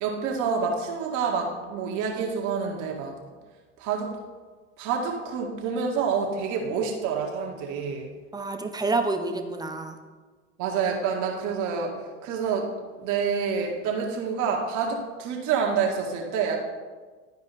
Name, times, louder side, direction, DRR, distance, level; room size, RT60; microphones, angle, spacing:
voice 1, 0.0-3.2 3.8-4.1 4.8-8.1 10.6-11.9 12.2-12.7 13.0-16.6, right 6 dB, 55° right, 1 dB, 1.9 m, -27 dB
voice 2, 8.3-10.0, right 3 dB, 10° right, 6 dB, 0.8 m, -28 dB
12.0 x 4.8 x 4.2 m, 1.4 s
hypercardioid pair, 90°, 36 cm